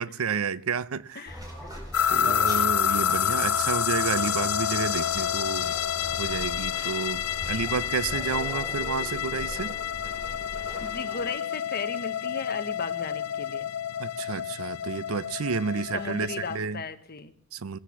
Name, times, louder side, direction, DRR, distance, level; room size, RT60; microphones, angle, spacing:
voice 1, 0.0-1.3 2.1-5.8 6.1-9.8 14.0-16.8 17.5-17.8, right 5 dB, 80° right, 0.6 m, -30 dB
voice 2, 1.1-1.7 3.0-3.4 10.8-13.7 15.7-17.3, left 4 dB, 45° left, 1.2 m, -37 dB
sound 1, 1.3-11.3, equal, 20° right, 4.7 m, -40 dB
sound 2, 1.9-16.6, left 9 dB, 80° left, 0.6 m, -29 dB
19.0 x 8.3 x 7.2 m
head